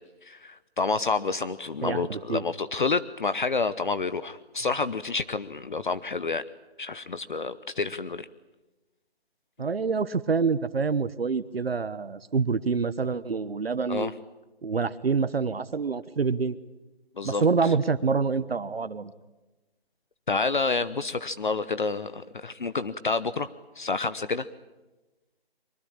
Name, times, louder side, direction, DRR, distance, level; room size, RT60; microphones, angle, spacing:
voice 1, 0.2-6.4 6.8-8.3 13.9-14.1 17.2-17.4 20.3-23.5 23.8-24.5, left 4 dB, 50° left, 14 dB, 0.9 m, -29 dB
voice 2, 1.8-2.4 9.6-14.1 14.6-16.6 17.2-19.1, right 5 dB, 65° right, 14 dB, 1.2 m, -26 dB
24.0 x 21.5 x 8.9 m, 1.1 s
hypercardioid pair, 170°, 32 cm